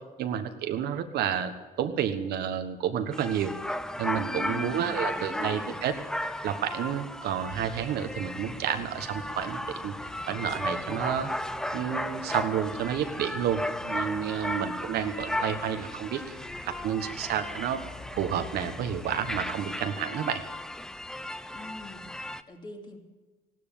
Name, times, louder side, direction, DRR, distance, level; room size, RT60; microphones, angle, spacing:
voice 1, 0.2-1.5 1.8-3.5 4.0-5.9 6.4-9.9 10.3-11.3 11.7-17.8 18.1-20.4, right 9 dB, 70° right, 8 dB, 1.4 m, -30 dB
sound 1, 3.1-22.4, left 1 dB, 5° left, 0.6 m, -35 dB
voice 2, 4.1-5.7 21.5-23.0, left 3 dB, 25° left, 2 dB, 3.0 m, -43 dB
sound 2, 7.5-19.5, left 3 dB, 90° left, 2.3 m, -49 dB
16.5 x 12.5 x 7.1 m, 1.3 s
cardioid pair, 110°, 17 cm